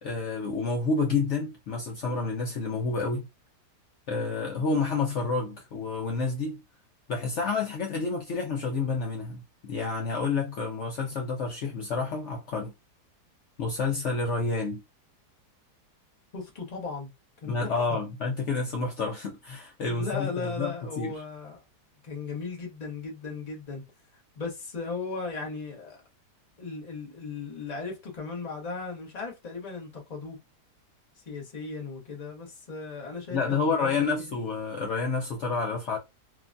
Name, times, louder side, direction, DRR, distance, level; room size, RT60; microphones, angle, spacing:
voice 1, 0.0-3.3 4.1-6.6 7.1-12.7 13.6-14.8 17.4-21.2 33.3-36.0, left 4 dB, 70° left, 0.7 m, -29 dB
voice 2, 16.3-17.1 17.4-18.0 19.9-21.6 22.0-23.8 24.4-26.0 26.6-30.4 31.3-34.4, left 4 dB, 30° left, 0.9 m, -37 dB
3.2 x 2.2 x 2.5 m
omnidirectional pair, 1.8 m